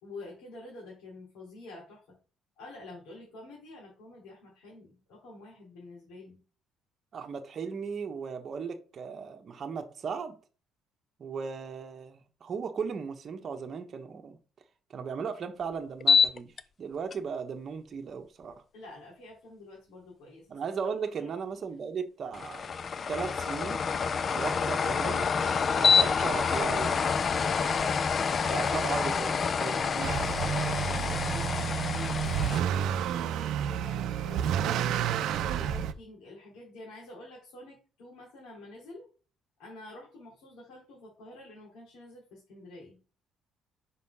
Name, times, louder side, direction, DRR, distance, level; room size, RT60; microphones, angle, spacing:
voice 1, 0.0-2.2 2.6-6.4 18.7-20.6 21.2-21.3 30.9-39.1 39.6-43.0, left 2 dB, 90° left, 3.1 m, -48 dB
voice 2, 7.1-10.4 11.2-14.4 14.9-16.5 16.8-18.6 20.5-22.7 23.1-23.8 24.3-25.3 25.7-27.1 27.6-28.1 28.4-30.2, right 6 dB, 35° right, 1.1 m, -36 dB
sound 1, 16.0-16.6 17.1-17.2 22.3-32.6, left 6 dB, 35° left, 0.4 m, -27 dB
Motor vehicle (road) / Accelerating revving vroom, 30.0-35.9, right 9 dB, 70° right, 0.5 m, -30 dB
5.6 x 4.2 x 5.5 m
cardioid pair, 150°, 0 cm